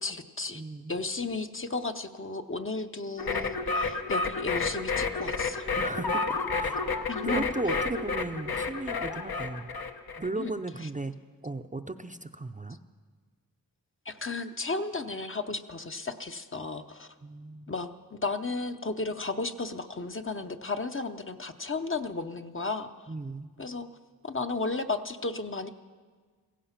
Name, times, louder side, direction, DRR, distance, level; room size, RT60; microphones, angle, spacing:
voice 1, 0.0-0.6 0.9-5.7 7.1-7.4 10.4-10.5 10.8-10.9 14.1-17.1 17.7-23.1 23.6-23.9 24.2-25.7, left 3 dB, 35° left, 8 dB, 0.7 m, -34 dB
voice 2, 0.5-0.9 5.8-9.7 10.2-11.1 11.4-12.8 17.2-17.7 23.1-23.5, right 2 dB, 20° right, 8 dB, 0.5 m, -36 dB
sound 1, 3.2-10.3, left 4 dB, 75° left, 1.0 m, -30 dB
16.0 x 15.5 x 5.8 m, 1.5 s
wide cardioid pair, 80°, 37 cm